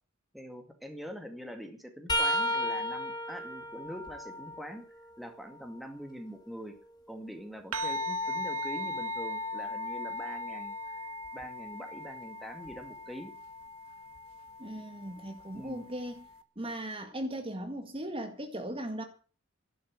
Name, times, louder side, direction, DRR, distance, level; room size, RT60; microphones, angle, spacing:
voice 1, 0.3-4.8 5.2-6.8 7.1-13.3 15.5-15.9, equal, ahead, 2.2 m, -44 dB
sound 1, 2.1-5.9 6.4-8.3 11.2-11.4 12.7-12.8 14.2-14.3, equal, 20° left, 2.4 m, -35 dB
sound 2, 7.7-16.4, left 2 dB, 85° right, 1.4 m, -38 dB
voice 2, 14.6-16.2 16.6-19.0, right 1 dB, 25° right, 1.8 m, -38 dB
13.0 x 11.5 x 7.5 m
head